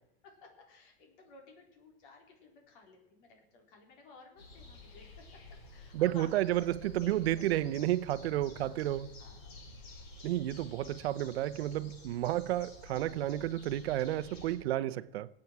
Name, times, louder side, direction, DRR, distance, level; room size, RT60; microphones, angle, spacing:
voice 1, 0.2-5.4 5.7-7.4 7.7-7.9 8.6-8.9 9.2-9.6 14.7-14.8, left 3 dB, 55° left, 4.1 m, -57 dB
sound 1, 4.4-14.6, left 2 dB, 75° left, 6.3 m, -51 dB
voice 2, 5.9-9.1 10.2-15.3, right 14 dB, 85° right, 0.7 m, -31 dB
22.0 x 8.7 x 4.6 m
supercardioid pair, 160°, 31 cm